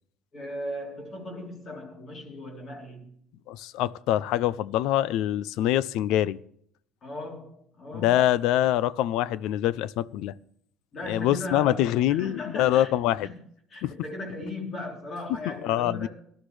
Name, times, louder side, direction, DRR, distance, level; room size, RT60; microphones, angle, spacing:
voice 1, 0.3-3.1 7.0-8.1 10.9-12.9 13.2-13.3 13.7-16.1, left 1 dB, 35° left, 3.5 m, -37 dB
voice 2, 3.5-6.4 7.9-10.3 11.1-13.3 13.8-13.9 15.5-16.1, left 13 dB, 75° left, 0.5 m, -25 dB
18.5 x 11.5 x 3.3 m
cardioid pair, 130°, 0 cm